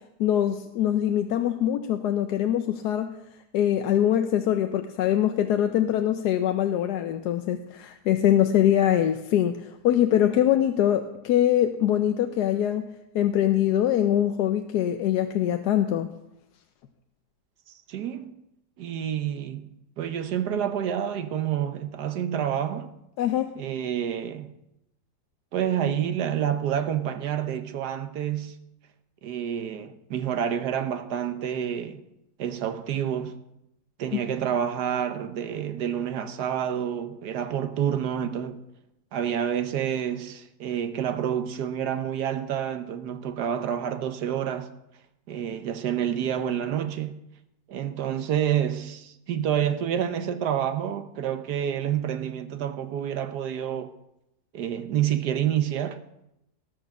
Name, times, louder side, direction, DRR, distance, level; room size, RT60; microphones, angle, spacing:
voice 1, 0.2-3.1 3.5-12.8 13.1-16.1 23.2-23.6 34.1-34.2, left 11 dB, 80° left, 1.2 m, -23 dB
voice 2, 17.7-18.4 18.8-22.9 23.6-24.5 25.5-28.6 29.2-32.0 32.4-33.4 34.0-38.6 39.1-44.7 45.3-47.2 47.7-53.9 54.5-56.0, right 9 dB, 75° right, 1.4 m, -28 dB
19.0 x 6.5 x 6.0 m
omnidirectional pair, 1.8 m